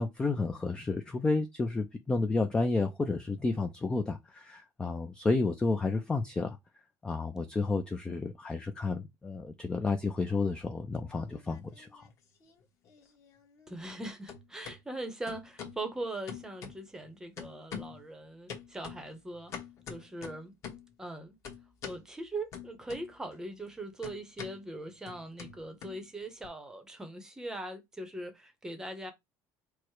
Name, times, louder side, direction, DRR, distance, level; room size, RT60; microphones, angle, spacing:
voice 1, 0.0-6.6 7.0-12.1, left 3 dB, 10° left, 0.3 m, -31 dB
sound 1, 11.3-12.1 12.4-14.0 14.3-14.8 15.3-15.8 16.3-17.1 17.4-18.0 18.5-20.9 21.4-22.0 22.5-23.4 23.6-26.5, left 7 dB, 40° left, 1.1 m, -45 dB
voice 2, 13.7-19.5 19.9-20.5 21.0-21.4 21.8-29.1, right 2 dB, 5° right, 0.7 m, -41 dB
4.6 x 2.0 x 4.6 m
cardioid pair, 165°, 8 cm